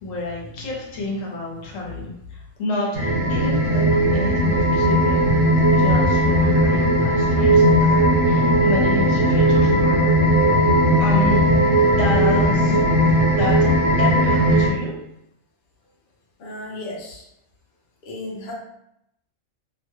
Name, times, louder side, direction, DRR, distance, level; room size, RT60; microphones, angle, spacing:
voice 1, 0.0-5.3 5.7-10.4 11.0-11.4 11.8-12.8 13.2-13.5 14.0-14.9, left 2 dB, 75° left, -3 dB, 1.2 m, -29 dB
sound 1, 2.9-14.7, right 1 dB, 60° right, 1.3 m, -17 dB
voice 2, 16.4-17.2 18.0-18.5, left 2 dB, 50° left, -3 dB, 0.7 m, -34 dB
2.9 x 2.2 x 3.1 m, 0.78 s
omnidirectional pair, 1.3 m